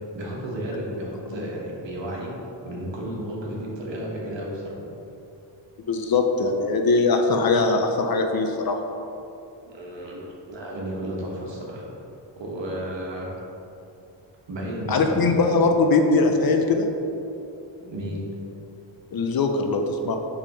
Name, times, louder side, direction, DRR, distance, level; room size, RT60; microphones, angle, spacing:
voice 1, 0.1-2.3 2.6-4.8 9.6-11.9 12.4-13.3 14.5-15.5 17.8-18.2, right 1 dB, 70° right, -3 dB, 1.3 m, -33 dB
voice 2, 5.9-8.8 14.9-16.9 19.1-20.2, left 3 dB, 55° left, 4 dB, 0.5 m, -21 dB
5.0 x 3.6 x 5.5 m, 2.8 s
wide cardioid pair, 175°, 45 cm